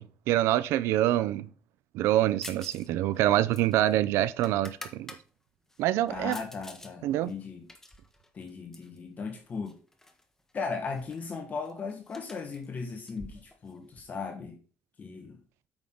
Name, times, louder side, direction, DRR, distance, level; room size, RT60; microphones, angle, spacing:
voice 1, 0.0-1.5 1.9-5.2 5.8-6.4 7.0-7.3, right 14 dB, 85° right, 0.5 m, -26 dB
sound 1, 2.4-2.9 3.1-5.2 5.7-6.9 7.3-9.0 9.7-10.2 10.5-10.6 10.9-14.0, left 1 dB, 10° left, 1.4 m, -48 dB
voice 2, 6.1-7.7 8.3-9.8 10.5-14.6 15.0-15.4, left 4 dB, 40° left, 1.5 m, -37 dB
8.8 x 5.9 x 3.9 m
cardioid pair, 105°, 4 cm